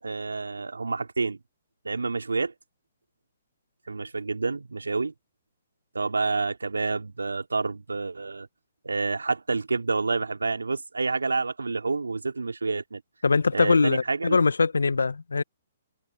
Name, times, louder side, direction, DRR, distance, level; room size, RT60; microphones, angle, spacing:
voice 1, 0.0-1.4 1.8-2.5 3.9-5.1 5.9-8.5 8.8-13.0 13.5-14.4, right 3 dB, 80° right, 3.7 m, -28 dB
voice 2, 13.2-15.4, left 4 dB, 80° left, 1.1 m, -22 dB
open air
figure-of-eight pair, 125°, 0 cm